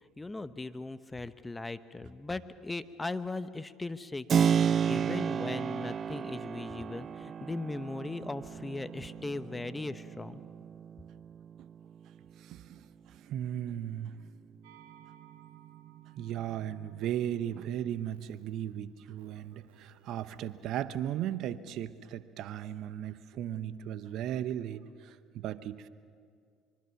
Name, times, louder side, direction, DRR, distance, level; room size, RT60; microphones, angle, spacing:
voice 1, 0.2-10.4, left 2 dB, 15° left, 13 dB, 0.9 m, -38 dB
Keyboard (musical), 4.3-12.9, right 7 dB, 40° right, 0.5 m, -32 dB
voice 2, 12.4-14.1 16.2-25.9, right 11 dB, 60° right, 14 dB, 0.9 m, -36 dB
sound 1, 14.6-21.1, right 13 dB, 80° right, 1.2 m, -58 dB
24.5 x 23.0 x 5.9 m, 2.2 s
hypercardioid pair, 70°, 0 cm